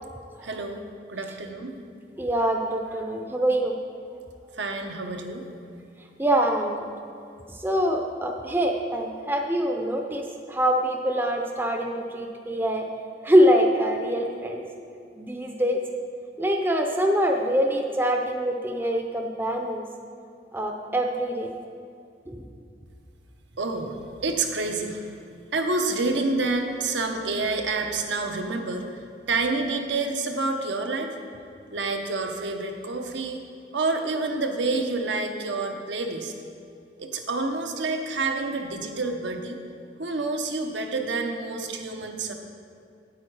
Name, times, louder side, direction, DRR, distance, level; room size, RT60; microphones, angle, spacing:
voice 1, 0.4-1.7 4.6-5.4 23.6-24.0 24.2-25.1 25.5-31.1 31.7-33.4 33.7-36.3 37.0-39.6 40.0-42.3, right 3 dB, 80° right, 4 dB, 0.9 m, -28 dB
voice 2, 2.2-3.7 6.2-6.9 7.6-12.9 13.2-14.6 15.2-15.8 16.4-19.9 20.5-21.5 22.3-22.4, equal, 10° right, 2 dB, 0.6 m, -24 dB
8.7 x 8.4 x 4.8 m, 2.5 s
head